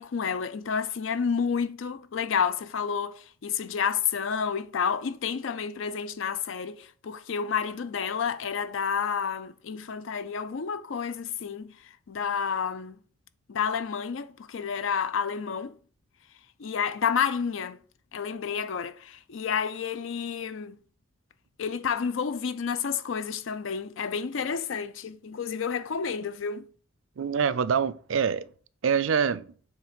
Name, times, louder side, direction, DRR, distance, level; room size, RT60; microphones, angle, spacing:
voice 1, 0.0-11.7 12.1-12.9 13.5-15.8 16.6-17.8 18.1-20.8 21.6-26.7, left 6 dB, 75° left, 0.5 m, -30 dB
voice 2, 27.2-28.5 28.8-29.5, right 7 dB, 80° right, 0.4 m, -25 dB
7.2 x 3.3 x 5.1 m
head